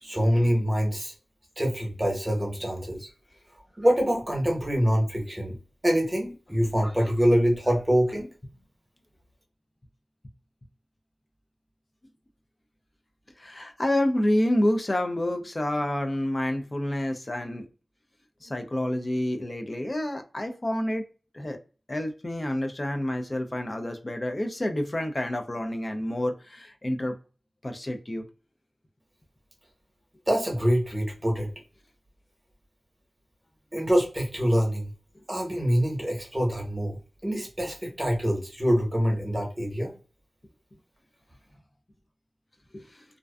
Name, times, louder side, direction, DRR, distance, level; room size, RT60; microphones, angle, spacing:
voice 1, 0.0-1.1 1.6-3.1 3.8-5.5 5.8-8.3 30.3-31.5 33.7-34.9 35.3-37.0 37.2-39.9, equal, 20° right, 0.9 m, -25 dB
voice 2, 13.4-17.7 18.4-21.0 21.3-21.6 21.9-27.2 27.6-28.3 35.2-35.3 42.7-43.0, left 1 dB, 35° left, 0.4 m, -28 dB
2.4 x 2.2 x 2.2 m
wide cardioid pair, 55°, 0 cm